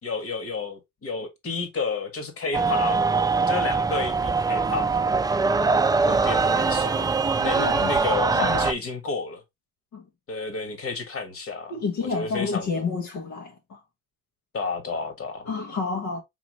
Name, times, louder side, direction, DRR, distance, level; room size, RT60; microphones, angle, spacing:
voice 1, 0.0-3.0 3.5-4.9 6.1-6.9 7.4-9.4 10.3-11.7 12.0-12.8 14.5-15.5, left 4 dB, 50° left, 1.6 m, -31 dB
sound 1, 2.5-8.7, right 4 dB, 15° right, 0.3 m, -22 dB
voice 2, 7.5-7.9 8.3-8.7 9.9-10.0 11.7-13.8 15.4-16.2, left 4 dB, 75° left, 1.2 m, -30 dB
6.0 x 3.0 x 2.9 m
cardioid pair, 90°, 30 cm